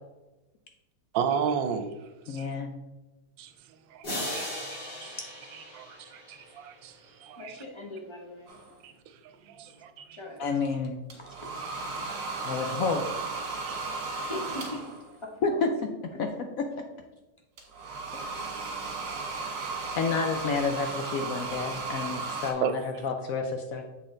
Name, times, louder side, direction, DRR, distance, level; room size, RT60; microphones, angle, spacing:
voice 1, 1.1-1.9 2.3-2.5 3.4-3.5 3.9-5.2 5.5-7.5 8.8-8.9 9.4-10.2 13.7-13.8 19.1-19.2 22.6-22.7, right 7 dB, 80° right, 1.3 m, -33 dB
voice 2, 2.3-2.7 10.4-11.0 12.4-13.0 15.4-15.7 16.0-16.3 19.9-23.8, left 4 dB, 75° left, 0.8 m, -29 dB
sound 1, 4.0-6.9, left 1 dB, 55° left, 3.1 m, -37 dB
voice 3, 7.4-9.0 9.6-9.8 10.1-10.6 11.1-12.6 13.5-15.6 16.1-16.2, left 1 dB, 30° left, 0.6 m, -43 dB
sound 2, 8.5-8.7 11.1-15.1 17.6-22.5, right 3 dB, 60° right, 1.7 m, -35 dB
7.4 x 4.1 x 3.8 m
omnidirectional pair, 2.0 m